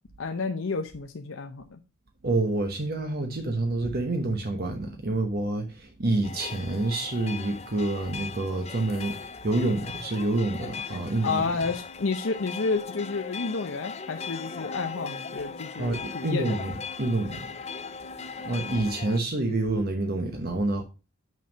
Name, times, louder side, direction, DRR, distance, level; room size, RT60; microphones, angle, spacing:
voice 1, 0.2-1.8 11.2-16.4, left 4 dB, 70° left, 0.7 m, -30 dB
voice 2, 2.2-11.4 15.8-17.5 18.4-20.8, right 2 dB, 50° right, 1.0 m, -28 dB
sound 1, 6.2-19.2, left 5 dB, 30° left, 0.6 m, -39 dB
6.4 x 5.4 x 5.2 m
head